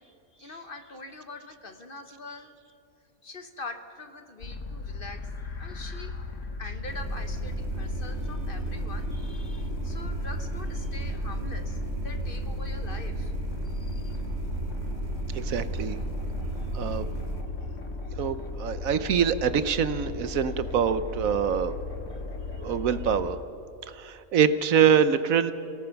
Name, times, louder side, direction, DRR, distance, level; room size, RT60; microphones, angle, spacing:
voice 1, 0.0-2.5 3.2-5.3 5.6-6.2 6.6-13.3 13.6-14.2, left 3 dB, 40° left, 7 dB, 1.2 m, -43 dB
sound 1, 4.4-23.3, left 3 dB, 60° left, 1.7 m, -37 dB
sound 2, 6.9-17.4, right 2 dB, 50° right, 1.9 m, -34 dB
voice 2, 15.3-16.0 16.7-17.1 18.2-21.7 22.6-23.4 23.9-25.5, right 7 dB, 70° right, 12 dB, 1.2 m, -24 dB
27.0 x 18.0 x 5.9 m, 2.7 s
omnidirectional pair, 1.5 m